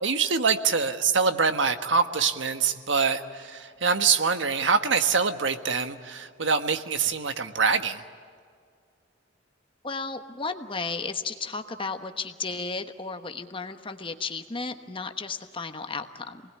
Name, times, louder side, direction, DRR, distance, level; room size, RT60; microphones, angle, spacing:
voice 1, 0.0-8.0, right 5 dB, 70° right, 9 dB, 1.4 m, -24 dB
voice 2, 9.8-16.4, left 4 dB, 25° left, 7 dB, 1.2 m, -34 dB
28.0 x 20.0 x 9.8 m, 2.2 s
head